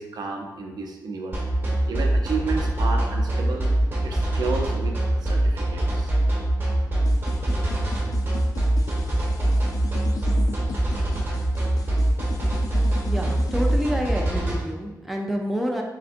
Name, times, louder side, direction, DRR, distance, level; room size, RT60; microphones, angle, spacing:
voice 1, 0.0-1.4 1.9-3.7 4.0-6.1, right 4 dB, 70° right, 2 dB, 0.6 m, -32 dB
sound 1, 1.3-14.5, right 1 dB, 30° right, 1.3 m, -23 dB
sound 2, 7.1-13.9, left 3 dB, 55° left, 0.4 m, -38 dB
voice 2, 13.0-15.8, equal, ahead, 0 dB, 0.4 m, -28 dB
4.5 x 3.8 x 2.5 m, 1.1 s
wide cardioid pair, 145°, 7 cm